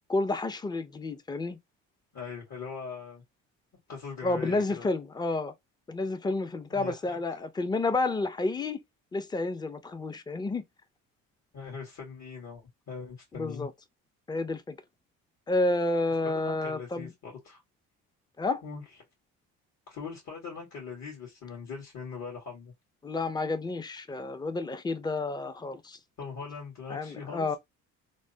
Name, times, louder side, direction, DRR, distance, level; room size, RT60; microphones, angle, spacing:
voice 1, 0.1-1.6 4.2-5.5 5.9-8.8 9.1-10.6 13.3-13.7 14.3-14.8 15.5-17.1 18.4-18.6 23.0-26.0 26.9-27.6, left 2 dB, 15° left, 0.5 m, -30 dB
voice 2, 2.1-3.2 3.9-4.9 6.7-7.4 11.5-13.7 16.2-17.6 18.6-18.8 19.9-22.7 26.2-27.5, left 5 dB, 55° left, 1.7 m, -41 dB
3.3 x 2.1 x 2.6 m
supercardioid pair, 80°, 33 cm